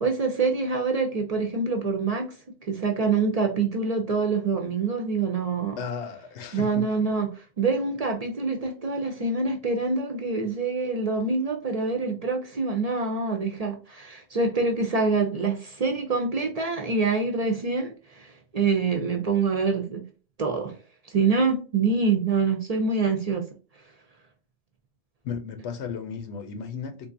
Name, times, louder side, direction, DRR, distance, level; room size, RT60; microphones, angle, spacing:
voice 1, 0.0-5.8 6.5-20.1 20.4-20.8 21.0-23.5 23.7-23.9, right 4 dB, 45° right, 0.5 m, -26 dB
voice 2, 5.8-6.9 25.2-27.1, left 6 dB, 90° left, 1.0 m, -34 dB
3.7 x 2.4 x 2.5 m
omnidirectional pair, 1.1 m